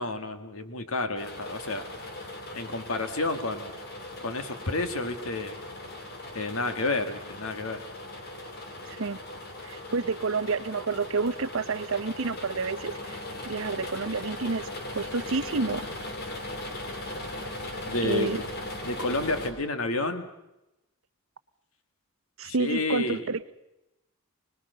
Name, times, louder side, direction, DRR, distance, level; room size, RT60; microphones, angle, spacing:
voice 1, 0.0-1.9 2.5-3.8 4.2-5.6 6.3-7.8 17.9-18.4 18.8-20.3 22.4-23.2, left 2 dB, 75° left, 9 dB, 2.1 m, -30 dB
sound 1, 1.2-19.5, left 1 dB, 50° left, 3.4 m, -39 dB
voice 2, 8.9-9.2 9.6-15.9 18.0-18.4 22.4-23.4, right 4 dB, 65° right, 14 dB, 0.8 m, -29 dB
25.5 x 20.0 x 6.8 m, 0.93 s
head